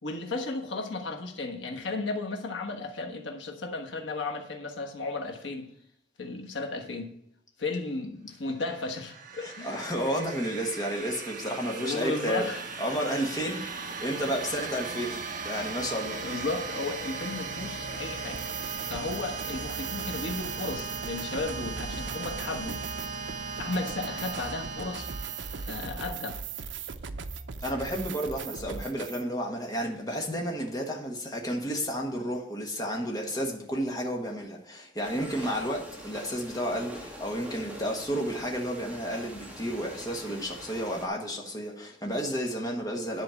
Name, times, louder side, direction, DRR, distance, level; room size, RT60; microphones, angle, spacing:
voice 1, 0.0-5.7 6.2-7.1 7.6-9.8 11.7-12.6 13.6-13.7 16.2-18.4 18.9-22.8 23.4-25.1 25.6-26.4, left 3 dB, 90° left, 1.3 m, -34 dB
sound 1, 8.6-26.2, right 4 dB, 50° right, 0.9 m, -38 dB
voice 2, 9.4-12.5 12.8-16.2 27.6-43.2, equal, 20° left, 1.4 m, -32 dB
sound 2, 18.3-29.2, right 5 dB, 80° right, 0.6 m, -39 dB
sound 3, 35.0-41.1, right 1 dB, 10° right, 1.5 m, -44 dB
10.5 x 4.2 x 7.0 m
head